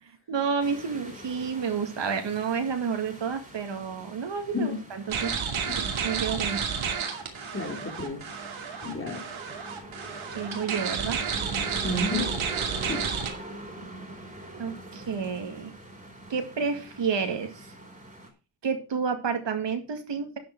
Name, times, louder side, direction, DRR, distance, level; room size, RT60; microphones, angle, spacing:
voice 1, 0.0-5.4 5.8-6.6 10.3-11.2 14.5-15.7 16.3-17.7 18.6-20.4, right 6 dB, 65° right, 2.2 m, -30 dB
sound 1, 0.6-18.3, right 1 dB, 15° right, 3.2 m, -44 dB
sound 2, 5.1-13.3, right 6 dB, 80° right, 2.6 m, -31 dB
voice 2, 7.5-8.3 8.8-9.3 11.8-12.4 12.9-13.1, left 2 dB, 25° left, 2.7 m, -31 dB
12.0 x 7.0 x 4.7 m
wide cardioid pair, 125°, 47 cm